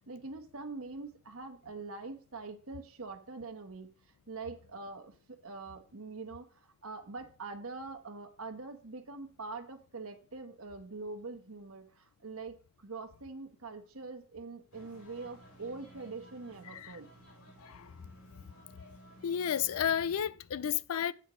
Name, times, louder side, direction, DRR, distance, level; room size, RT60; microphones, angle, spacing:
voice 1, 0.0-3.9 4.3-17.1, right 3 dB, 70° right, 1.2 m, -44 dB
sound 1, 14.7-20.2, equal, 90° left, 3.6 m, -56 dB
voice 2, 17.6-17.9 18.8-19.0 19.2-21.1, left 9 dB, 75° left, 0.4 m, -32 dB
10.0 x 8.1 x 3.1 m
head